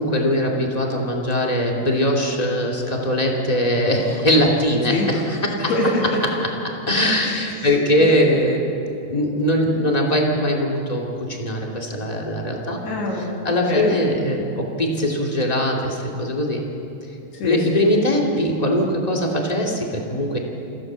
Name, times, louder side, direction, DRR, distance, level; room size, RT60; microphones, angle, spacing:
voice 1, 0.0-5.7 6.9-8.6 9.1-12.8 13.4-16.6 17.4-20.4, left 1 dB, 10° left, -1 dB, 2.0 m, -21 dB
voice 2, 5.6-6.2 7.5-8.2 12.8-14.0 17.3-17.9, left 1 dB, 80° left, -1 dB, 4.7 m, -25 dB
28.0 x 16.0 x 7.6 m, 2.8 s
omnidirectional pair, 4.6 m